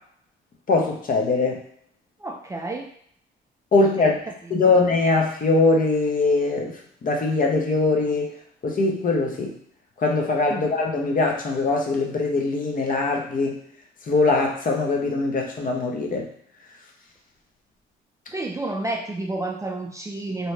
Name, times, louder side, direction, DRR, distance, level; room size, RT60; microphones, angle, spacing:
voice 1, 0.7-1.6 3.7-4.1 4.5-8.3 8.6-9.6 10.0-13.6 14.1-16.3, left 3 dB, 45° left, 1 dB, 0.7 m, -22 dB
voice 2, 2.2-2.9 4.0-4.7 10.5-10.6 18.3-20.5, right 2 dB, 15° right, 1 dB, 0.3 m, -31 dB
2.7 x 2.1 x 3.2 m, 0.64 s
cardioid pair, 90°, 20 cm